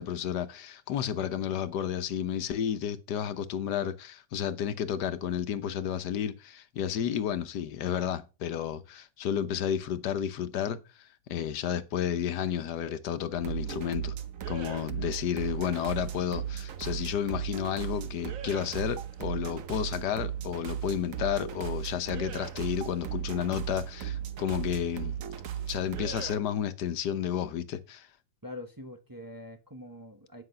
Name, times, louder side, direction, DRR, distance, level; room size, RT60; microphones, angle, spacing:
voice 1, 0.0-10.8 11.3-14.1 14.5-25.2 25.7-28.1, left 9 dB, 75° left, 1.4 m, -31 dB
sound 1, 13.3-26.4, right 9 dB, 55° right, 1.2 m, -36 dB
voice 2, 28.4-30.4, left 1 dB, 15° right, 0.9 m, -44 dB
10.0 x 5.9 x 5.5 m
omnidirectional pair, 1.8 m